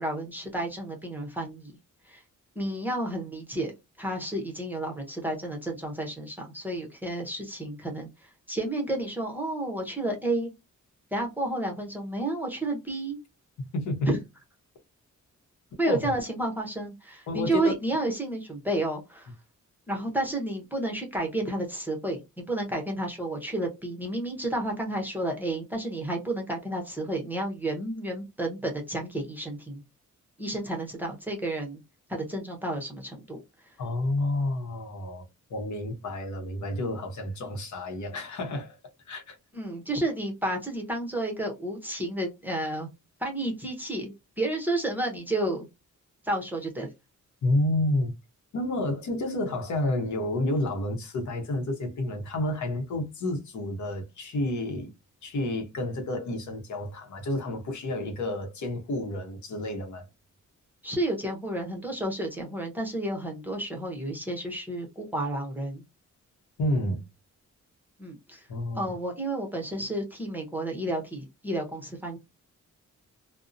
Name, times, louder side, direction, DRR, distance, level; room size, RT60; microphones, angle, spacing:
voice 1, 0.0-1.8 2.0-2.2 2.6-3.7 4.0-10.5 11.1-13.2 14.1-14.2 15.8-19.3 19.9-29.8 30.4-31.8 32.1-33.4 39.5-42.9 43.2-45.7 46.2-46.9 60.8-65.8 68.0-68.5 68.7-72.2, right 1 dB, 5° right, 0.6 m, -31 dB
voice 2, 13.6-14.1 15.8-16.0 17.3-17.7 33.8-38.8 39.1-39.4 47.4-48.1 48.5-54.9 55.2-60.1 66.6-67.0 68.5-68.9, left 1 dB, 70° left, 0.8 m, -30 dB
2.5 x 2.0 x 2.5 m
wide cardioid pair, 160°, 30 cm